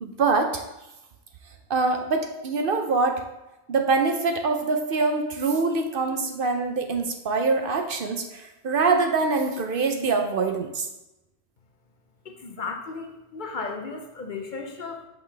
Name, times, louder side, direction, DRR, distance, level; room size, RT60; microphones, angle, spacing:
voice 1, 0.0-0.6 1.7-3.2 3.7-10.9, right 4 dB, 60° right, 5 dB, 0.8 m, -24 dB
voice 2, 12.3-15.1, left 4 dB, 50° left, 3 dB, 0.8 m, -35 dB
6.0 x 5.4 x 3.4 m, 0.95 s
omnidirectional pair, 1.1 m